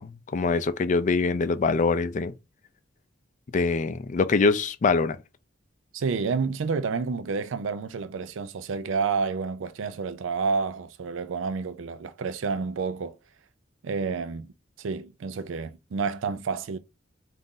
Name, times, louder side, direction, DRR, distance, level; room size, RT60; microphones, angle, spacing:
voice 1, 0.0-2.3 3.5-5.2, left 4 dB, 40° left, 0.4 m, -24 dB
voice 2, 5.9-13.2 13.8-14.5 14.8-16.8, right 5 dB, 85° right, 0.4 m, -29 dB
3.9 x 2.5 x 3.7 m
head